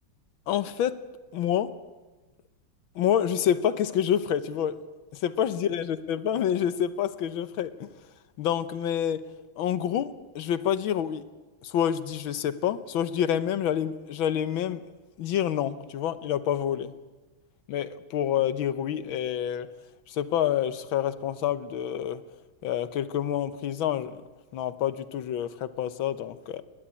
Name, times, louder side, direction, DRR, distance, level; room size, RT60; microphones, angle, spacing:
voice 1, 0.5-1.0 1.3-1.8 3.0-4.8 5.1-7.9 8.4-9.3 9.6-11.2 11.6-14.8 15.2-16.9 17.7-19.7 20.1-22.2 22.6-24.2 24.5-26.6, left 10 dB, 75° left, 13 dB, 1.7 m, -27 dB
28.5 x 11.5 x 9.9 m, 1.2 s
omnidirectional pair, 2.2 m